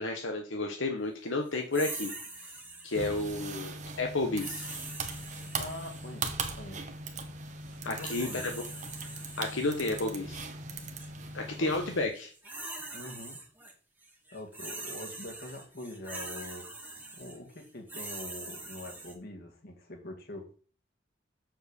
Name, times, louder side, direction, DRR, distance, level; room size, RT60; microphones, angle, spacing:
voice 1, 0.0-2.1 2.8-4.7 7.8-8.5 9.4-10.5 11.3-12.3, left 2 dB, 80° left, 3 dB, 1.1 m, -31 dB
sound 1, 1.7-3.3 4.4-6.2 7.7-10.1 10.8-11.1 12.1-13.7 14.0-19.1, right 2 dB, 10° right, 1.8 m, -43 dB
sound 2, 2.9-12.1, right 3 dB, 40° right, 1.2 m, -40 dB
voice 2, 5.6-6.9 7.8-8.4 11.5-11.8 12.9-13.4 14.3-16.7 17.1-20.5, left 1 dB, 55° left, 2 dB, 2.1 m, -44 dB
7.6 x 4.6 x 6.8 m, 0.41 s
head